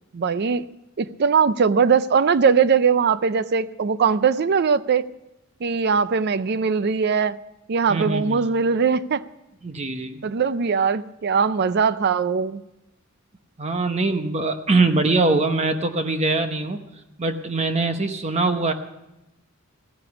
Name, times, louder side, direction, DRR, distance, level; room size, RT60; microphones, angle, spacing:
voice 1, 0.1-0.6 1.0-5.0 5.6-7.4 7.7-9.2 10.2-12.6, right 6 dB, 50° right, 16 dB, 0.5 m, -20 dB
voice 2, 7.9-8.4 9.6-10.2 13.6-16.8 17.2-18.7, right 3 dB, 30° right, 7 dB, 0.9 m, -22 dB
16.0 x 9.9 x 6.9 m, 0.92 s
head